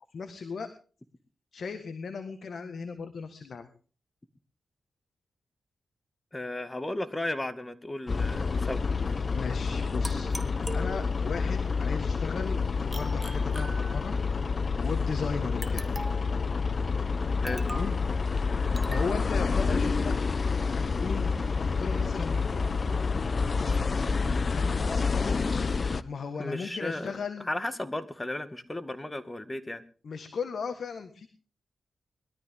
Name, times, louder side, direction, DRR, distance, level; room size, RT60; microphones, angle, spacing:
voice 1, 0.1-0.7 1.5-3.7 8.9-10.3 10.7-14.1 14.5-15.9 17.6-18.0 18.2-20.1 20.7-21.3 21.6-22.7 24.4-24.8 25.5-27.5 30.0-31.3, left 5 dB, 70° left, 8 dB, 1.7 m, -37 dB
voice 2, 6.3-9.2 17.4-17.7 26.4-27.1 27.5-29.8, left 1 dB, 20° left, 11 dB, 2.0 m, -35 dB
sound 1, 8.1-26.0, left 4 dB, 50° left, 0.7 m, -28 dB
sound 2, 10.0-11.4 12.9-14.3 15.6-16.4 17.5-18.0 18.8-19.1, right 1 dB, 5° right, 2.0 m, -41 dB
21.5 x 13.0 x 3.7 m, 0.38 s
cardioid pair, 60°, 0 cm